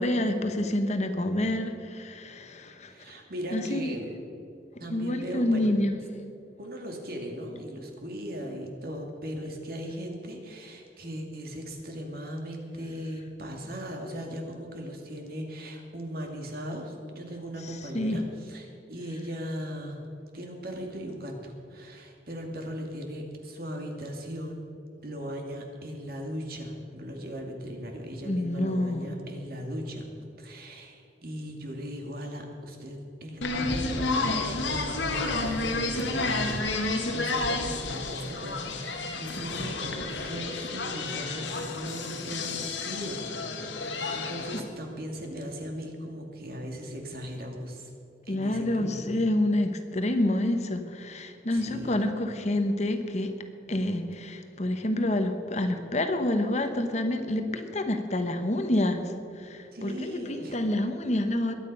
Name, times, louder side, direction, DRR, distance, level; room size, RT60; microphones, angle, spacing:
voice 1, 0.0-2.9 3.5-3.9 4.9-5.9 17.6-18.2 28.2-29.1 48.3-53.3 53.7-61.5, left 1 dB, 40° left, 7 dB, 1.1 m, -28 dB
voice 2, 2.9-4.1 4.8-5.7 6.6-20.0 20.3-24.7 25.0-30.1 30.4-43.6 44.1-47.9 48.2-49.2 51.5-52.0 59.7-60.6, equal, 55° right, 2 dB, 2.4 m, -38 dB
sound 1, 33.4-44.6, left 3 dB, 90° left, 1.8 m, -31 dB
22.0 x 9.1 x 5.4 m, 2.6 s
head